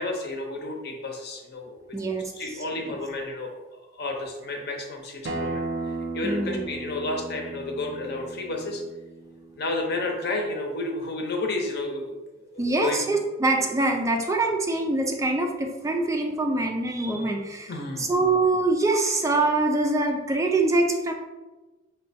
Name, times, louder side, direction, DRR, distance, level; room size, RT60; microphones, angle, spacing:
voice 1, 0.0-1.8 2.3-5.6 6.1-8.8 9.6-13.0 17.1-17.3 17.7-18.1, left 2 dB, 55° left, 1 dB, 0.8 m, -31 dB
voice 2, 1.9-2.3 2.9-3.0 6.2-6.6 12.6-21.1, right 2 dB, 15° right, 3 dB, 0.3 m, -24 dB
Acoustic guitar, 5.2-10.4, right 2 dB, 70° right, 0.6 m, -35 dB
5.5 x 2.2 x 4.1 m, 1.2 s
head